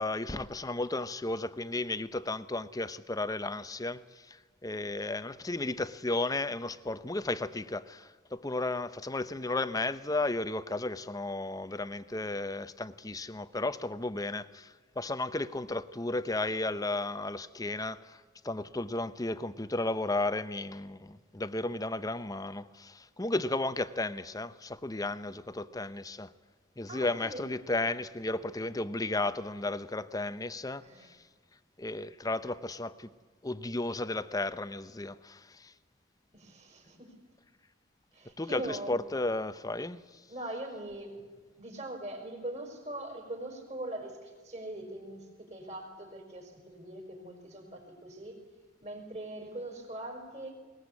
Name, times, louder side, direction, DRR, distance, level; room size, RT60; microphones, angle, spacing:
voice 1, 0.0-26.3 26.8-31.2 31.8-33.1 33.4-35.7 38.4-40.2, left 2 dB, 20° left, 0.7 m, -34 dB
voice 2, 26.9-27.5 30.8-31.1 36.3-37.1 38.1-38.9 40.3-41.3 41.6-48.3 48.8-50.5, right 1 dB, 35° right, 5.1 m, -42 dB
21.0 x 20.0 x 8.4 m
head